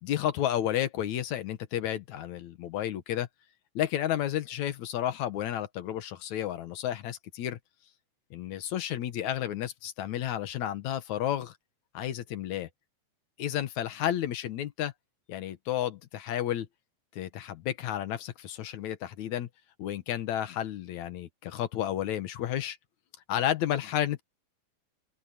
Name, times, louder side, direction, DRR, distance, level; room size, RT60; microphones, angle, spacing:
voice 1, 0.0-3.3 3.8-7.6 8.3-11.5 11.9-12.7 13.4-14.9 15.3-16.7 17.2-19.5 19.8-22.8 23.3-24.2, left 11 dB, 75° left, 2.5 m, -31 dB
open air
omnidirectional pair, 3.4 m